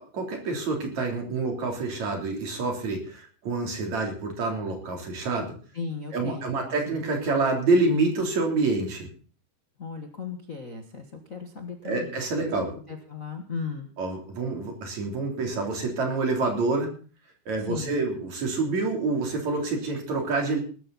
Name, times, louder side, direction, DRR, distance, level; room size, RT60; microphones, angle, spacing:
voice 1, 0.0-5.5 6.1-9.1 11.8-12.7 14.0-16.9 17.5-20.6, right 3 dB, 60° right, 2 dB, 4.7 m, -27 dB
voice 2, 5.7-6.9 9.8-12.2 12.9-13.9 17.7-18.0, left 5 dB, 40° left, 4 dB, 1.3 m, -36 dB
19.0 x 13.0 x 4.1 m, 0.39 s
omnidirectional pair, 3.6 m